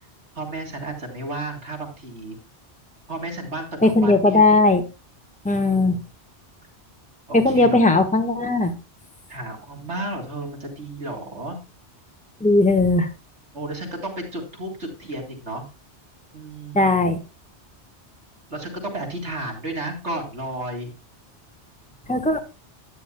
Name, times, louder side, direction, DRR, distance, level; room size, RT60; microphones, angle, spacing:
voice 1, 0.4-2.4 3.1-4.5 5.5-6.1 7.3-7.8 9.3-11.6 13.5-15.6 16.3-17.0 18.5-20.9 22.0-22.4, right 1 dB, 80° right, 1 dB, 4.0 m, -33 dB
voice 2, 3.8-4.8 5.4-6.0 7.3-8.7 12.4-13.1 16.7-17.2 22.1-22.4, left 2 dB, 5° left, 6 dB, 1.4 m, -18 dB
13.0 x 9.8 x 2.2 m, 0.30 s
omnidirectional pair, 1.2 m